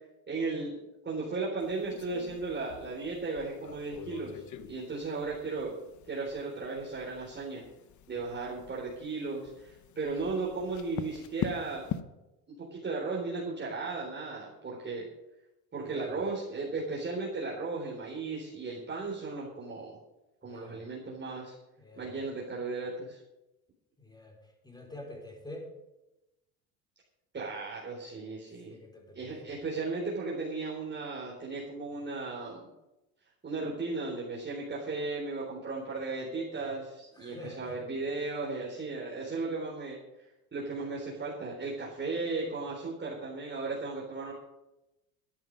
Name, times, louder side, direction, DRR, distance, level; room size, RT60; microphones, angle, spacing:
voice 1, 0.3-5.7 6.0-7.6 8.1-11.9 12.6-15.1 15.7-20.0 20.4-21.5 22.0-23.2 27.3-28.7 29.1-32.7 33.4-40.0 40.5-44.3, right 3 dB, 25° right, -5 dB, 3.9 m, -36 dB
sound 1, 1.6-12.0, left 9 dB, 40° left, 1.0 m, -43 dB
voice 2, 15.8-16.2 20.4-20.8 21.8-22.1 24.0-24.4 24.6-25.7 28.7-29.5 37.2-37.8, left 1 dB, 10° left, 1 dB, 4.5 m, -46 dB
13.0 x 10.5 x 5.3 m, 0.96 s
supercardioid pair, 90°, 43 cm